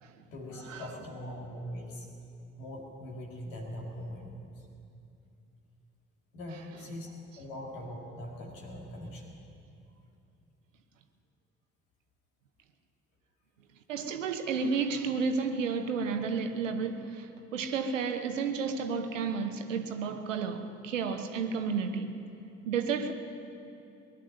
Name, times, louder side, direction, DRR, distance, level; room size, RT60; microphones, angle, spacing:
voice 1, 0.3-2.1 2.6-4.3 4.6-4.7 6.3-9.4, left 1 dB, 80° left, -1 dB, 2.3 m, -41 dB
voice 2, 13.9-22.1 22.7-23.1, right 5 dB, 85° right, 7 dB, 0.9 m, -32 dB
19.5 x 11.0 x 6.5 m, 2.7 s
figure-of-eight pair, 45°, 37 cm